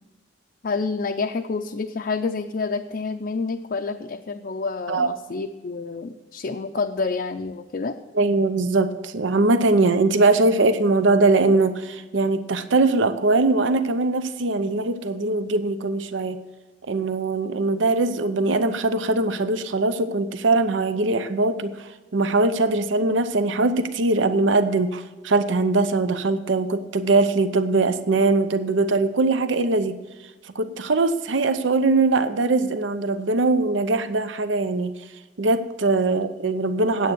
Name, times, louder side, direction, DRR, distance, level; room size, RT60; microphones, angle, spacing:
voice 1, 0.6-8.0, left 4 dB, 50° left, 4 dB, 0.5 m, -28 dB
voice 2, 8.1-16.4 16.9-30.0 30.5-34.9 35.4-37.1, right 3 dB, 80° right, 11 dB, 0.7 m, -21 dB
9.3 x 8.5 x 6.1 m, 1.2 s
head